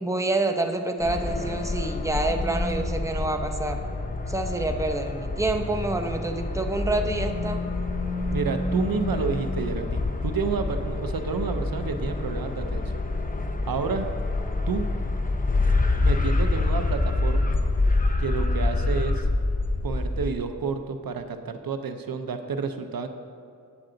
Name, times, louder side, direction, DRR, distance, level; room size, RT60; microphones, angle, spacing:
voice 1, 0.0-3.8 4.3-7.6, right 2 dB, 10° right, 5 dB, 0.7 m, -27 dB
sound 1, 1.0-20.3, left 2 dB, 25° left, 0.7 m, -27 dB
voice 2, 8.3-13.1 13.7-14.1 14.7-14.9 16.0-17.6 18.2-19.3 19.8-23.1, right 5 dB, 85° right, 7 dB, 0.6 m, -30 dB
8.6 x 7.9 x 3.8 m, 2.4 s
cardioid pair, 45°, 34 cm